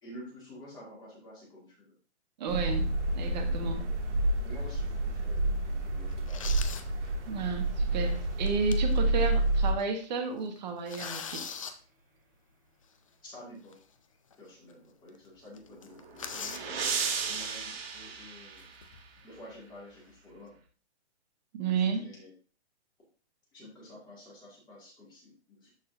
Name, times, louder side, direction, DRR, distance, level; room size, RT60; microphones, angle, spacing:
voice 1, 0.0-1.9 3.5-3.9 4.4-6.5 13.2-13.8 14.4-18.7 19.2-20.5 21.7-22.3 23.5-25.7, left 1 dB, 10° left, -4 dB, 2.1 m, -50 dB
voice 2, 2.4-3.8 7.3-11.5 21.5-22.1, right 5 dB, 40° right, 5 dB, 1.4 m, -32 dB
sound 1, 2.5-9.7, right 2 dB, 85° right, 2.2 m, -29 dB
sound 2, 4.7-5.0 5.5-5.6 6.1-6.9 7.3-7.4 8.2-9.0 9.4-9.5 9.8-10.0 10.4-11.7 13.7-13.8 14.3-14.4 14.7-14.8 15.1-15.3 15.5-16.7 17.8-18.0 18.6-19.2, left 6 dB, 30° left, 0.4 m, -41 dB
sound 3, 15.7-19.1, right 6 dB, 60° right, 2.1 m, -35 dB
12.5 x 4.2 x 2.6 m, 0.38 s
hypercardioid pair, 160°, 34 cm